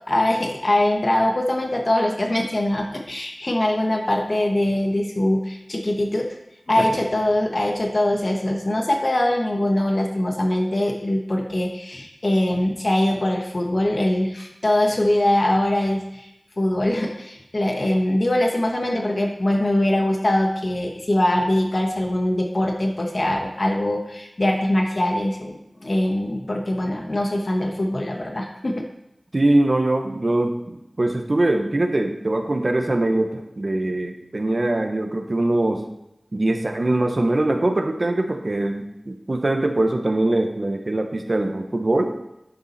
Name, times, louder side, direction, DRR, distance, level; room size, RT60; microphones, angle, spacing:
voice 1, 0.1-6.3 6.7-16.3 16.6-28.8, left 1 dB, 55° left, 2 dB, 1.2 m, -22 dB
voice 2, 29.3-35.9 36.3-42.1, right 2 dB, 55° right, 4 dB, 1.2 m, -22 dB
11.0 x 7.0 x 4.3 m, 0.86 s
wide cardioid pair, 55°, 0 cm